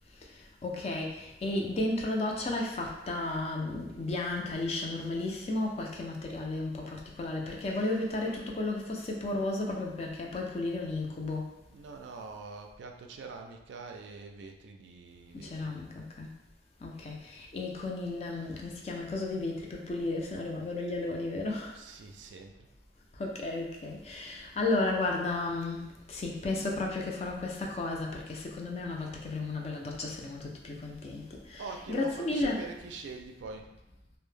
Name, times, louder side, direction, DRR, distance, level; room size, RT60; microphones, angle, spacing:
voice 1, 0.2-11.5 15.3-16.3 16.8-21.8 23.1-31.6 31.9-32.6, left 2 dB, 35° left, 0 dB, 0.3 m, -33 dB
voice 2, 11.7-15.7 21.7-22.7 31.6-33.7, right 4 dB, 80° right, 3 dB, 0.3 m, -44 dB
2.0 x 2.0 x 3.1 m, 0.90 s
head